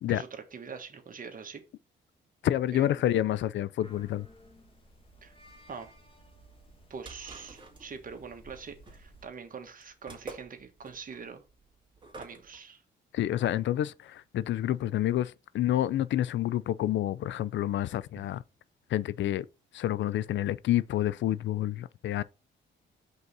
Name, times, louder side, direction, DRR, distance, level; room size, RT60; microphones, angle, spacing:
voice 1, 0.1-1.6 2.7-3.0 5.2-5.3 5.7-5.9 6.9-11.4 12.2-12.8, right 5 dB, 45° right, 1.4 m, -44 dB
voice 2, 2.4-4.3 13.1-18.4 18.9-19.5 19.7-22.2, left 12 dB, 70° left, 0.4 m, -28 dB
sound 1, 3.8-9.3, equal, 25° left, 1.7 m, -56 dB
sound 2, 6.7-12.6, right 4 dB, 25° right, 2.0 m, -48 dB
5.4 x 3.9 x 5.5 m
cardioid pair, 90°, 20 cm